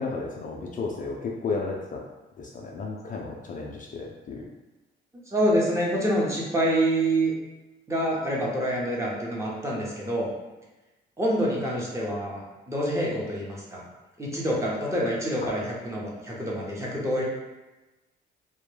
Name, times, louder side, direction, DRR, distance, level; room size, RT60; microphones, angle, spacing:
voice 1, 0.0-2.0 2.4-4.4 15.4-15.5, left 4 dB, 40° left, -1 dB, 0.4 m, -33 dB
voice 2, 5.1-7.3 7.9-10.3 11.2-13.8 14.2-17.2, right 1 dB, 15° right, -5 dB, 0.7 m, -27 dB
2.2 x 2.1 x 3.1 m, 1.1 s
cardioid pair, 90°, 20 cm